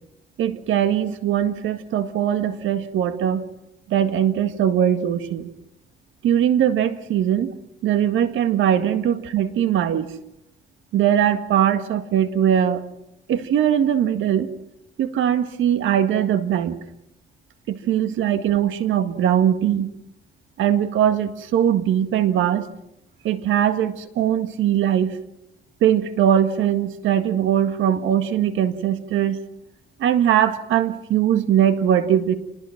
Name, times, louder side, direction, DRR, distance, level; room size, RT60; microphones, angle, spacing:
voice 1, 0.4-3.4 3.9-5.5 6.2-7.5 7.8-10.1 10.9-12.9 13.3-14.5 15.0-16.8 17.7-19.9 20.6-22.6 23.2-25.2 25.8-29.4 30.0-32.3, right 10 dB, 80° right, 10 dB, 1.8 m, -20 dB
27.5 x 20.5 x 5.9 m, 0.85 s
cardioid pair, 90°, 20 cm